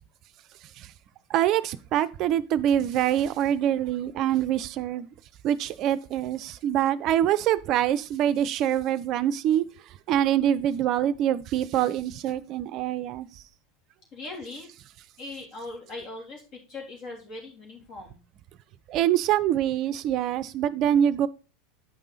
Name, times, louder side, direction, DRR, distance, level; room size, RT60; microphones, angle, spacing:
voice 1, 1.3-5.1 5.4-9.6 10.1-13.3 18.9-21.3, right 11 dB, 45° right, 0.5 m, -25 dB
voice 2, 14.1-14.7 15.2-18.2, left 2 dB, 45° left, 3.3 m, -40 dB
8.1 x 5.4 x 4.0 m
figure-of-eight pair, 80°, 0 cm